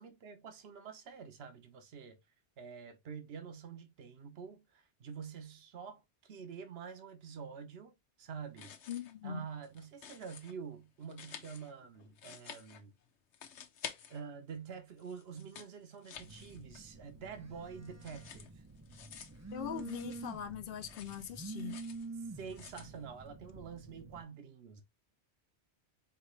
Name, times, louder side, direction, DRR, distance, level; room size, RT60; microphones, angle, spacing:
voice 1, 0.0-2.2 2.6-8.7 9.2-12.9 14.1-18.6 22.2-24.8, right 6 dB, 65° right, 1.1 m, -47 dB
sound 1, 8.4-9.2 9.5-10.5 11.0-13.1 13.3-14.6 14.9-17.0 17.3-20.5 20.8-22.1 22.5-22.9, left 8 dB, 90° left, 1.0 m, -51 dB
voice 2, 8.9-9.4 19.5-21.7, left 8 dB, 55° left, 0.8 m, -41 dB
Telephone, 16.2-24.2, right 3 dB, 20° right, 0.4 m, -48 dB
4.8 x 2.9 x 3.1 m
omnidirectional pair, 1.2 m